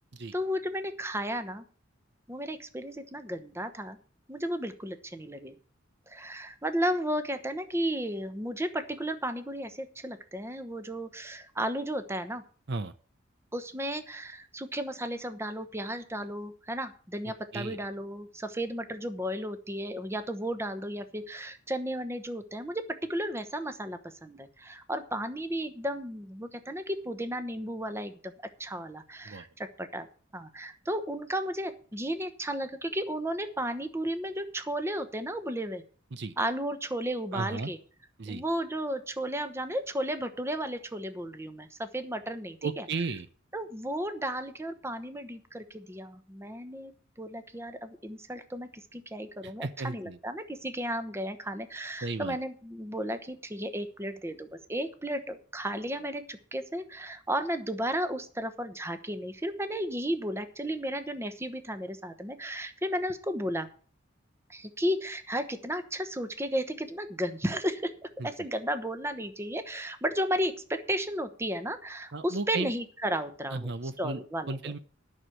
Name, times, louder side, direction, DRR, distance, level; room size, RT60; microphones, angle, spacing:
voice 1, 0.3-1.6 2.3-4.0 4.3-5.5 6.1-12.4 13.5-28.3 28.6-30.1 30.3-35.8 36.4-37.8 38.3-42.8 43.5-46.9 47.2-63.7 64.5-67.9 68.2-73.7 74.0-74.6, equal, 15° right, 10 dB, 1.0 m, -34 dB
voice 2, 37.3-37.7 38.2-38.4 42.6-43.3 49.4-50.2 52.0-52.4 68.2-68.5 72.1-72.7 73.5-74.8, right 3 dB, 60° right, 12 dB, 0.7 m, -35 dB
11.0 x 6.2 x 8.0 m, 0.41 s
head